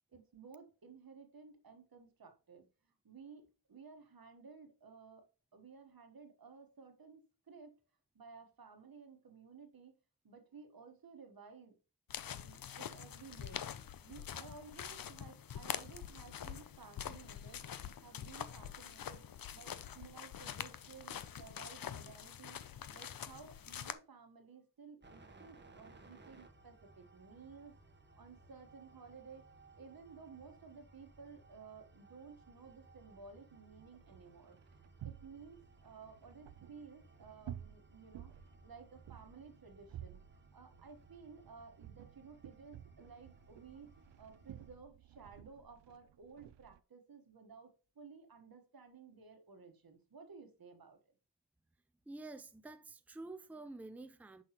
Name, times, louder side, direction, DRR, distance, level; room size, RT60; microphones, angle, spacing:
voice 1, 0.1-5.3 5.5-7.7 8.1-9.9 10.2-11.7 12.3-13.6 14.0-17.6 18.0-19.2 19.5-22.6 22.9-27.7 28.1-29.4 29.8-38.3 38.6-43.9 44.2-51.0, right 5 dB, 55° right, 1.3 m, -56 dB
sound 1, 12.1-23.9, left 9 dB, 55° left, 0.6 m, -45 dB
sound 2, 25.0-44.8, right 2 dB, 25° right, 1.0 m, -62 dB
sound 3, 33.5-46.8, right 11 dB, 80° right, 0.5 m, -54 dB
voice 2, 52.1-54.4, right 2 dB, 5° right, 0.5 m, -49 dB
6.2 x 5.8 x 2.9 m
wide cardioid pair, 105°, 42 cm